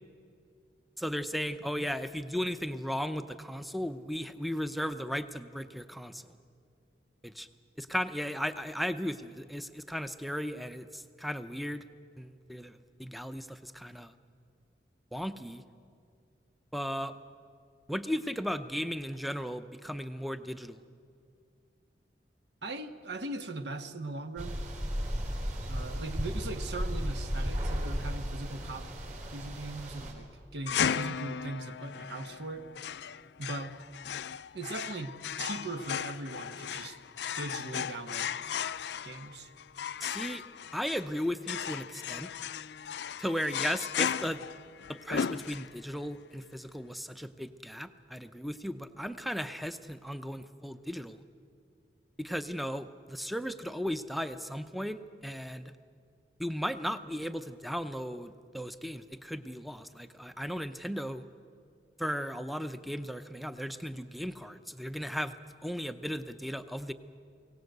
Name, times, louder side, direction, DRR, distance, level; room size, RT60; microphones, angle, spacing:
voice 1, 1.0-6.4 7.2-7.5 7.8-11.9 12.2-14.1 15.1-15.6 16.7-17.2 17.9-20.8 40.0-40.4 40.7-42.3 43.2-44.5 44.9-51.2 52.2-55.7 56.4-61.3 62.0-66.9, equal, ahead, 11 dB, 0.6 m, -36 dB
voice 2, 22.6-24.6 25.7-28.9 29.3-32.7 33.4-33.7 34.5-37.0 37.4-38.4 39.0-39.5, right 2 dB, 75° right, 9 dB, 1.2 m, -39 dB
sound 1, 24.4-30.1, equal, 45° right, 4.3 m, -34 dB
sound 2, 30.7-46.0, left 8 dB, 75° left, 0.4 m, -36 dB
23.0 x 18.0 x 8.0 m, 2.4 s
head